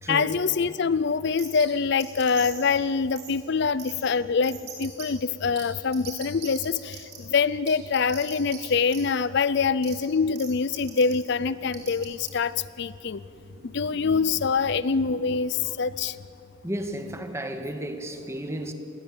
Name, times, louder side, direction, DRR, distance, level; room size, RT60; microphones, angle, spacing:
voice 1, 0.1-13.2 13.6-16.2, left 5 dB, 55° left, 17 dB, 0.5 m, -25 dB
sound 1, 1.4-1.7 2.0-2.7 3.2-3.3 3.8-4.0 4.4-5.1 5.6-5.7 5.9-7.2 7.7-8.6 8.9-9.0 9.8-9.9 10.4-10.5 10.8-11.1 11.7-12.3, right 8 dB, 50° right, 6.0 m, -40 dB
sound 2, 11.2-16.4, equal, 75° right, 6.6 m, -49 dB
voice 2, 16.6-18.7, right 1 dB, 15° right, 6 dB, 1.9 m, -33 dB
28.5 x 21.5 x 8.9 m, 2.8 s
head